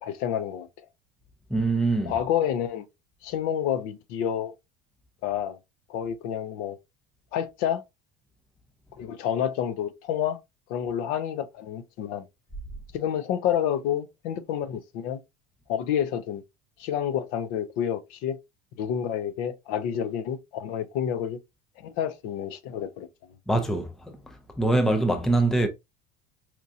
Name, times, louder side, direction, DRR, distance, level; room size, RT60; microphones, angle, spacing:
voice 1, 0.0-0.9 2.1-2.9 3.2-4.5 5.2-5.6 5.9-6.8 7.3-7.8 9.0-10.4 10.7-12.2 12.9-15.2 15.7-16.4 16.8-18.4 18.8-21.4 21.8-23.1, left 9 dB, 60° left, 0.6 m, -29 dB
voice 2, 1.5-2.1 23.5-23.9 24.6-25.7, right 2 dB, ahead, 0.4 m, -23 dB
4.4 x 2.7 x 2.4 m
cardioid pair, 165°, 17 cm